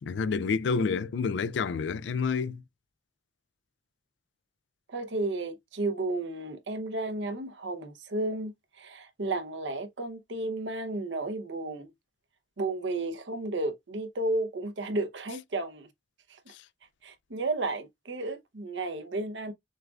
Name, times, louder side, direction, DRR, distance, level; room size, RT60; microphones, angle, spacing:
voice 1, 0.0-2.6, left 5 dB, 70° left, 0.3 m, -28 dB
voice 2, 4.9-8.5 8.8-11.9 12.6-15.9 16.3-16.4 17.0-19.5, right 2 dB, 75° right, 0.8 m, -33 dB
6.4 x 2.4 x 2.3 m
head